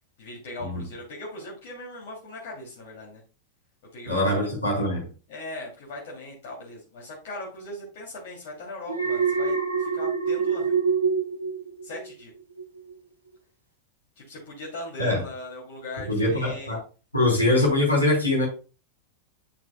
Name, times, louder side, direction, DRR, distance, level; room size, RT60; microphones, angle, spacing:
voice 1, 0.2-3.2 3.9-4.5 5.3-10.8 11.8-12.3 14.2-16.8, left 1 dB, 55° left, -5 dB, 2.9 m, -39 dB
voice 2, 4.1-5.1 15.0-15.2 16.1-16.8 17.1-18.5, left 1 dB, 80° left, -2 dB, 3.4 m, -23 dB
Alarm, 8.9-12.2 12.6-12.9, right 5 dB, 85° right, 1.5 m, -25 dB
10.5 x 6.1 x 2.3 m, 0.33 s
figure-of-eight pair, 90°, 0 cm